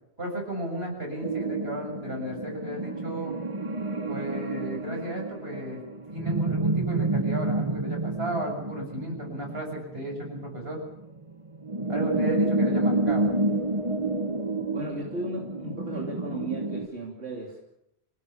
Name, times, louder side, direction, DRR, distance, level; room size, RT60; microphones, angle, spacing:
voice 1, 0.2-3.3 4.1-5.8 6.1-10.8 11.9-13.3, right 1 dB, 65° right, 1 dB, 7.3 m, -34 dB
sound 1, 1.2-16.9, right 2 dB, 30° right, 1.1 m, -29 dB
voice 2, 14.7-17.6, right 2 dB, 85° right, -2 dB, 3.4 m, -35 dB
26.0 x 18.0 x 7.1 m, 0.83 s
omnidirectional pair, 1.1 m